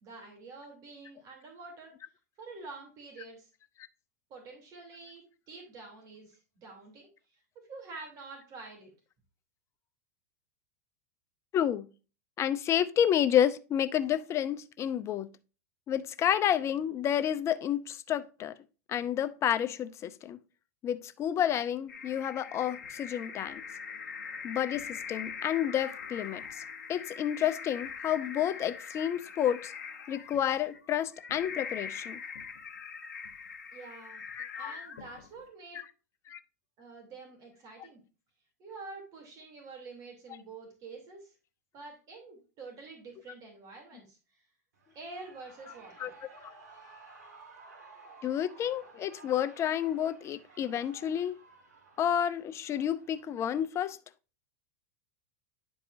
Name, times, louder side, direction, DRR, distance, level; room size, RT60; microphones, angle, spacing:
voice 1, 0.0-1.9 2.4-3.5 4.3-7.1 7.7-8.9 33.7-34.2 34.5-35.9 36.8-38.0 38.6-41.3 41.7-44.4 44.9-46.1, right 3 dB, 40° right, 2.9 m, -47 dB
voice 2, 11.5-11.9 12.4-15.3 15.9-18.6 18.9-20.4 20.8-23.6 24.4-26.6 26.9-29.7 30.1-32.2 34.4-34.7 36.3-36.4 46.0-46.1 48.2-51.4 52.0-54.0, left 10 dB, 30° left, 0.5 m, -30 dB
sound 1, 21.9-35.4, left 6 dB, 80° left, 1.2 m, -42 dB
Shout / Cheering, 44.7-53.7, right 3 dB, 75° right, 1.9 m, -55 dB
10.5 x 4.7 x 2.6 m
hypercardioid pair, 100°, 9 cm